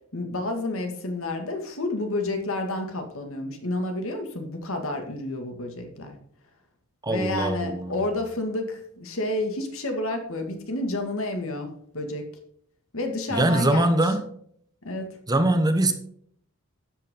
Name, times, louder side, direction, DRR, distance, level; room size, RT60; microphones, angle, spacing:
voice 1, 0.1-6.2 7.1-12.2 12.9-14.0 14.8-15.1, left 2 dB, 65° left, 4 dB, 2.1 m, -30 dB
voice 2, 7.0-8.0 13.3-14.2 15.3-15.9, right 1 dB, 15° right, 8 dB, 1.0 m, -22 dB
12.5 x 8.3 x 3.8 m, 0.65 s
head